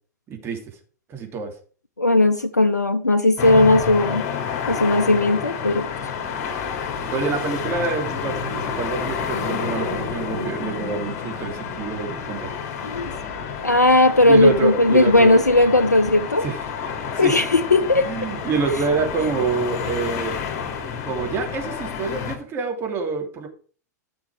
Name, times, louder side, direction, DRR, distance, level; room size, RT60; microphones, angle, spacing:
voice 1, 0.3-0.6 1.1-1.5 7.0-12.5 14.3-15.4 16.4-17.5 17.9-20.4 20.9-23.5, right 4 dB, 25° right, 2 dB, 3.0 m, -27 dB
voice 2, 2.0-4.2 4.7-5.9 12.8-13.1 13.6-16.4 17.2-18.1, left 2 dB, 80° left, 8 dB, 0.7 m, -17 dB
sound 1, 3.4-22.4, left 6 dB, 40° left, 3.2 m, -29 dB
13.5 x 6.3 x 4.9 m, 0.41 s
figure-of-eight pair, 95°, 9 cm